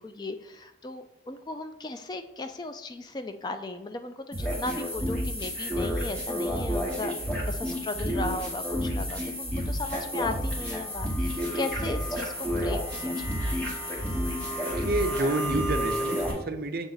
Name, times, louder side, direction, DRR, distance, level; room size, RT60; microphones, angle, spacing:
voice 1, 0.0-7.1 7.5-13.2, left 2 dB, 25° left, 8 dB, 0.3 m, -36 dB
sound 1, 4.3-16.3, equal, 5° left, 1.2 m, -30 dB
voice 2, 14.7-16.9, right 2 dB, 55° right, 7 dB, 0.5 m, -29 dB
7.0 x 3.5 x 3.9 m, 0.86 s
head